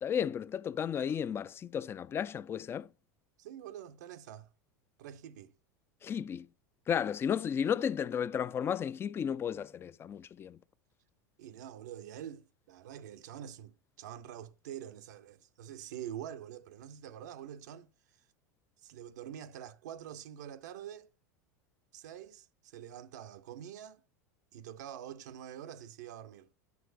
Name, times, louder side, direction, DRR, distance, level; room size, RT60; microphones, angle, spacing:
voice 1, 0.0-2.9 6.0-6.5 6.9-10.6, left 8 dB, 25° left, 0.3 m, -33 dB
voice 2, 3.4-4.5 5.0-5.5 11.4-17.9 18.8-21.1 21.9-24.0 24.5-26.5, right 10 dB, 75° right, 0.5 m, -46 dB
9.3 x 5.9 x 2.5 m
hypercardioid pair, 90°, 10 cm